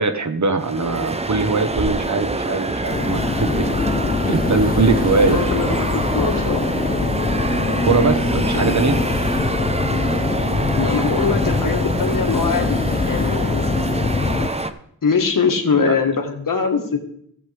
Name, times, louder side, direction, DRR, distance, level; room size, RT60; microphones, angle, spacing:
voice 1, 0.0-3.7 4.3-5.4 7.8-9.0 15.8-15.9, right 4 dB, 50° right, 9 dB, 1.0 m, -21 dB
sound 1, 0.6-14.7, right 2 dB, 15° right, 0.7 m, -26 dB
sound 2, 2.9-14.5, left 3 dB, 25° left, 0.6 m, -23 dB
voice 2, 5.2-6.6 8.5-8.8 10.7-13.8 15.0-17.0, left 5 dB, 65° left, 4 dB, 1.6 m, -22 dB
15.5 x 7.4 x 3.4 m, 0.68 s
cardioid pair, 50°, 36 cm